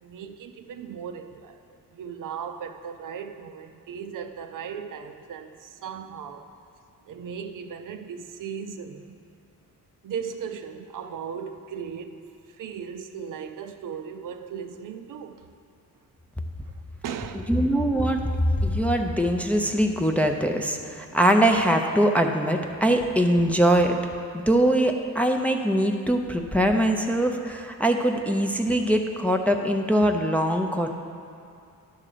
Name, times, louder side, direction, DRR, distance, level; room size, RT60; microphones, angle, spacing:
voice 1, 0.0-1.6 1.9-6.5 7.1-9.2 10.0-15.5 16.6-16.7 17.0-17.5, right 7 dB, 65° right, 7 dB, 0.6 m, -37 dB
voice 2, 17.5-24.0 24.3-30.9, right 1 dB, 5° left, 3 dB, 0.5 m, -22 dB
11.0 x 3.7 x 6.7 m, 2.5 s
cardioid pair, 110°, 35 cm